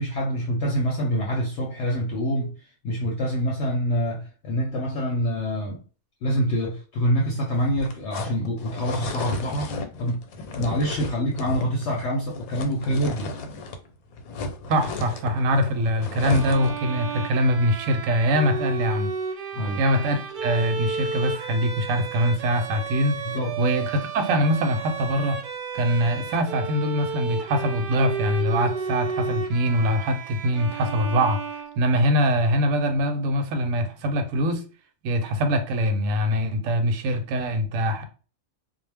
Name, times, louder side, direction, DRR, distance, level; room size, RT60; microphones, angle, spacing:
voice 1, 0.0-5.8 6.2-9.7 10.0-10.2 10.6-13.3 19.5-19.8 23.2-23.6, equal, 65° left, 0.8 m, -26 dB
sound 1, 7.5-13.9 14.1-16.9, left 2 dB, 90° left, 1.0 m, -34 dB
voice 2, 14.7-19.1 19.8-23.2 23.6-25.4 25.7-34.6 35.0-38.0, equal, 70° right, 1.0 m, -23 dB
Bowed string instrument, 16.2-32.2, right 5 dB, 85° right, 0.4 m, -32 dB
2.3 x 2.1 x 3.3 m
omnidirectional pair, 1.5 m